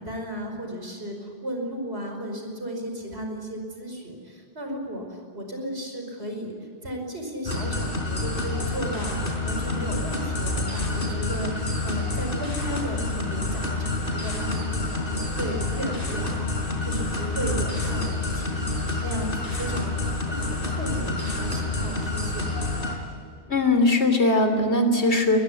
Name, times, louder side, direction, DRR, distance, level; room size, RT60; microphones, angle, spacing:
voice 1, 0.0-6.5 6.8-9.2 9.4-18.7 19.0-22.6, equal, 70° right, 3 dB, 5.7 m, -34 dB
sound 1, 7.5-23.0, left 2 dB, 55° left, 4.5 m, -28 dB
voice 2, 23.5-25.4, left 2 dB, 85° left, 7 dB, 3.4 m, -20 dB
22.0 x 21.5 x 10.0 m, 2.3 s
omnidirectional pair, 1.1 m